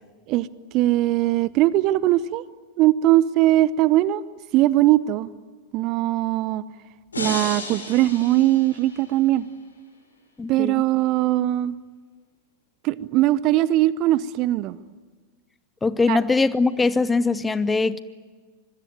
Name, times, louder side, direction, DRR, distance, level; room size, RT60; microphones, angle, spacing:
voice 1, 0.7-2.4 2.8-4.2 4.5-5.3 5.7-6.6 7.2-9.4 10.5-11.7 12.8-14.8 16.1-16.2, right 15 dB, 40° right, 0.7 m, -20 dB
sound 1, 7.1-9.3, left 2 dB, 75° left, 6.0 m, -33 dB
voice 2, 10.4-10.8 15.8-18.0, left 3 dB, 10° left, 0.8 m, -21 dB
26.0 x 22.0 x 9.5 m
figure-of-eight pair, 90°, 0 cm